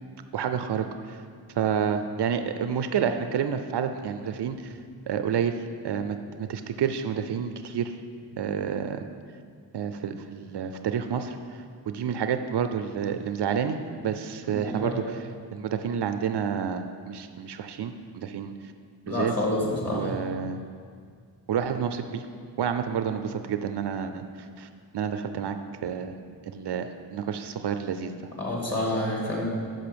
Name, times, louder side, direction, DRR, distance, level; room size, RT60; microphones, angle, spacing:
voice 1, 0.3-1.2 1.6-4.7 5.1-5.6 5.8-7.9 8.4-9.1 9.7-11.4 11.9-15.2 15.5-18.5 19.1-19.4 19.8-20.6 21.5-22.2 22.6-24.3 24.6-25.6 25.8-26.1 26.5-28.2, right 7 dB, 70° right, 8 dB, 0.5 m, -29 dB
voice 2, 14.5-15.0 19.1-20.1 28.4-29.4, left 1 dB, 35° left, -2 dB, 2.2 m, -28 dB
6.2 x 5.3 x 6.8 m, 2.1 s
cardioid pair, 65°, 44 cm